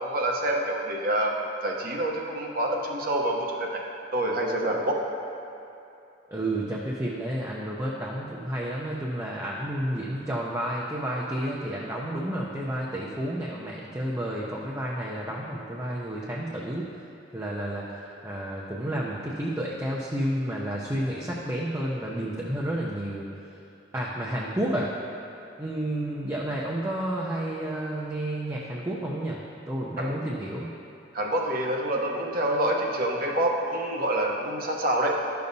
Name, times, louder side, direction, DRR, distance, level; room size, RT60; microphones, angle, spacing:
voice 1, 0.0-1.3 1.6-3.8 4.1-5.0 30.0-30.1 31.1-35.2, right 1 dB, 55° right, 0 dB, 0.9 m, -27 dB
voice 2, 6.3-16.9 17.3-23.3 23.9-24.9 25.6-30.7, right 1 dB, 15° right, -4 dB, 0.6 m, -31 dB
11.5 x 6.8 x 2.7 m, 2.8 s
head